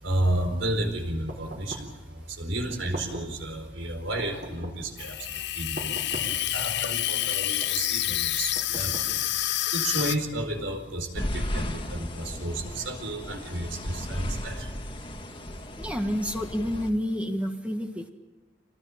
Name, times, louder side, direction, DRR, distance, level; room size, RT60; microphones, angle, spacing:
voice 1, 0.0-9.0 9.7-14.8, right 1 dB, 75° right, 6 dB, 4.6 m, -32 dB
sound 1, 1.3-2.0 2.7-3.4 4.2-4.9 5.8-6.5 7.2-7.8 8.5-9.4, right 1 dB, 45° right, 5.3 m, -40 dB
Water tap faucet / Sink (filling or washing), 5.0-10.2, left 13 dB, 60° left, 0.7 m, -28 dB
sound 2, 11.1-16.9, equal, 25° left, 2.3 m, -35 dB
voice 2, 15.8-18.1, equal, 5° right, 4 dB, 1.6 m, -29 dB
27.0 x 19.0 x 9.0 m, 1.2 s
head